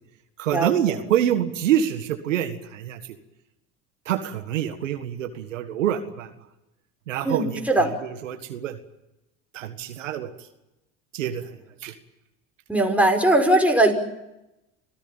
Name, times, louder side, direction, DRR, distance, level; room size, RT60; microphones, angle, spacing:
voice 1, 0.4-3.2 4.1-6.3 7.1-7.6 8.0-8.8 9.5-10.3 11.1-11.4 11.8-11.9, right 10 dB, 90° right, 8 dB, 1.8 m, -26 dB
voice 2, 7.2-7.9 12.7-13.9, right 1 dB, 5° right, 3 dB, 5.4 m, -19 dB
27.0 x 17.0 x 9.0 m, 0.93 s
hypercardioid pair, 75°, 37 cm